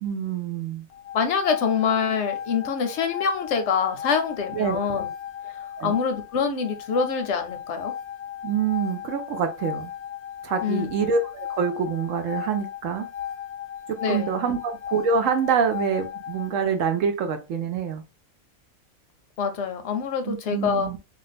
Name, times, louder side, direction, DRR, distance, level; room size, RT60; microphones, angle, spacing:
voice 1, 0.0-0.9 4.5-4.8 5.8-6.0 8.4-9.9 10.4-13.1 13.9-18.0 20.2-21.0, right 6 dB, 65° right, 6 dB, 0.9 m, -26 dB
sound 1, 0.9-16.7, left 10 dB, 80° left, 1.1 m, -36 dB
voice 2, 1.1-5.1 5.8-7.9 10.6-10.9 14.0-14.6 19.4-20.9, left 6 dB, 60° left, 6 dB, 0.8 m, -25 dB
2.5 x 2.3 x 4.0 m, 0.28 s
omnidirectional pair, 1.5 m